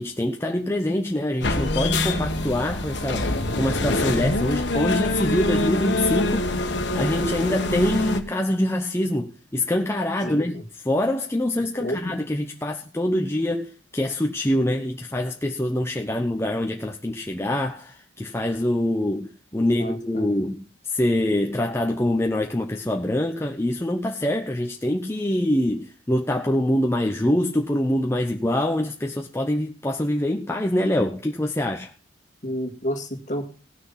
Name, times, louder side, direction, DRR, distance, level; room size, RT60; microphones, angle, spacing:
voice 1, 0.0-3.3 3.5-6.7 6.9-10.6 10.8-31.9, left 1 dB, 15° left, 0.9 m, -25 dB
sound 1, 1.4-8.2, left 2 dB, 65° left, 1.5 m, -25 dB
voice 2, 10.2-10.6 11.7-12.1 19.5-20.3 32.4-33.5, equal, 40° left, 2.1 m, -31 dB
17.5 x 6.5 x 5.7 m
head